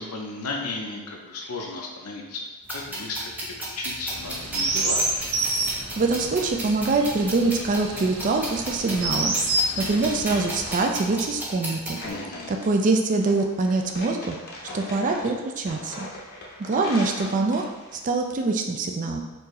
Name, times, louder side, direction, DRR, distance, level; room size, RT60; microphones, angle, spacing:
voice 1, 0.0-2.4 2.7-5.0 12.0-12.6 16.8-17.3, left 3 dB, 80° left, 0 dB, 0.7 m, -35 dB
sound 1, 2.7-12.1, right 1 dB, 10° right, 0.7 m, -35 dB
Chirp tweet, 4.1-10.8, right 2 dB, 60° right, 0.7 m, -29 dB
voice 2, 6.0-9.3 9.8-12.0 12.5-14.4 14.7-16.1 16.6-17.6 17.9-19.2, right 3 dB, 35° right, 3 dB, 0.4 m, -24 dB
sound 2, 9.4-18.0, left 1 dB, 45° left, 0.7 m, -40 dB
4.4 x 2.7 x 3.1 m, 1.1 s
head